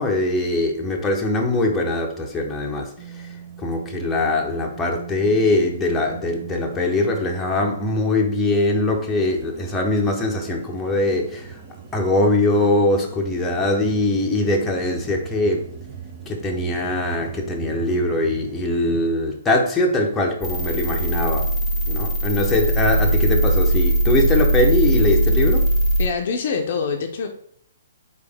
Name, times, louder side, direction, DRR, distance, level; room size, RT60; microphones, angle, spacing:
voice 1, 0.0-3.3 3.6-11.6 11.9-15.7 16.3-21.5 21.9-25.7, left 2 dB, 15° left, 1 dB, 0.7 m, -22 dB
sound 1, 3.0-19.1, right 7 dB, 40° right, 0.7 m, -40 dB
sound 2, 20.4-26.0, right 1 dB, 10° right, 1.5 m, -20 dB
voice 2, 26.0-27.3, left 5 dB, 50° left, 4 dB, 0.6 m, -25 dB
4.4 x 3.3 x 3.4 m, 0.65 s
figure-of-eight pair, 125°, 0 cm